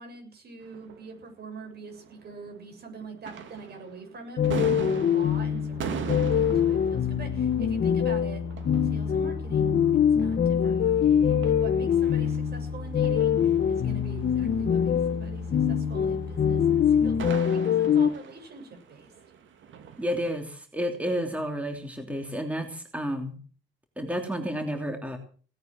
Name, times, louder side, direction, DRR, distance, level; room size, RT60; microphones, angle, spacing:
voice 1, 0.0-8.5 8.8-19.1, right 4 dB, 55° right, 5 dB, 7.5 m, -44 dB
sound 1, 0.6-2.7 3.0-20.3, right 7 dB, 75° right, 2.7 m, -42 dB
sound 2, 4.4-18.1, left 8 dB, 55° left, 1.3 m, -24 dB
Boat Water vehicle, 5.7-17.2, left 3 dB, 85° left, 1.8 m, -38 dB
voice 2, 20.0-23.3 24.0-25.2, equal, 5° right, 4 dB, 3.0 m, -31 dB
18.0 x 9.2 x 7.5 m, 0.42 s
cardioid pair, 90°, 20 cm